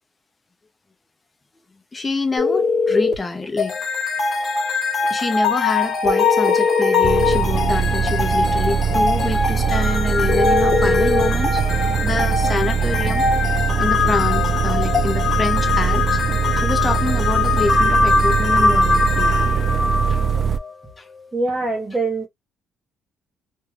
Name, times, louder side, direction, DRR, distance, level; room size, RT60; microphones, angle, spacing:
voice 1, 1.9-3.8 5.1-11.6 12.0-13.3 13.8-16.2 16.5-19.5 20.1-20.2 21.0-21.1, left 3 dB, 20° left, 0.6 m, -26 dB
sound 1, 2.4-3.2 6.0-7.5 10.3-11.3, left 4 dB, 70° left, 0.9 m, -19 dB
sound 2, 3.6-20.7, left 4 dB, 40° left, 0.9 m, -22 dB
sound 3, 7.0-20.6, right 7 dB, 40° right, 0.3 m, -22 dB
voice 2, 21.3-22.3, right 3 dB, 15° right, 0.8 m, -23 dB
2.5 x 2.2 x 3.2 m
cardioid pair, 125°, 0 cm